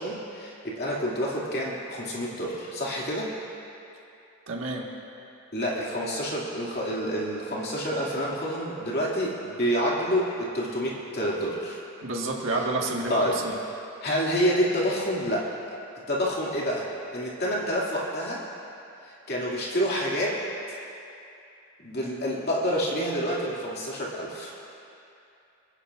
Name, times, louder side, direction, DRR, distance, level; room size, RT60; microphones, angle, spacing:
voice 1, 0.0-3.3 5.5-11.8 12.5-12.7 13.1-13.4 14.0-15.5 16.1-18.4 19.0-20.4 20.7-20.8 21.8-24.5, equal, 50° left, -5 dB, 2.5 m, -28 dB
voice 2, 4.5-4.9 12.0-13.2 13.4-13.5, right 2 dB, 70° right, -1 dB, 1.7 m, -29 dB
27.5 x 11.0 x 2.5 m, 2.7 s
head